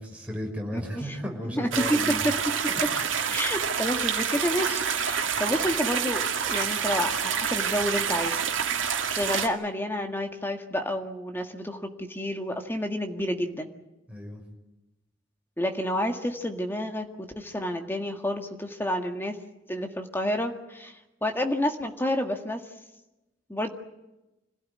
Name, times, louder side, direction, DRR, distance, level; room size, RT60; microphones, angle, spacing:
voice 1, 0.0-2.2 2.7-2.8 3.1-3.3 5.3-5.4 14.1-14.4, equal, 5° right, -1 dB, 6.0 m, -35 dB
voice 2, 0.7-1.2 1.5-2.3 3.3-8.4 9.1-13.7 15.6-17.1 17.4-19.4 19.7-22.6 23.5-23.7, equal, 10° left, 4 dB, 1.8 m, -29 dB
sound 1, 1.7-9.5, right 7 dB, 80° right, 2.2 m, -27 dB
26.0 x 16.5 x 9.6 m, 0.99 s
head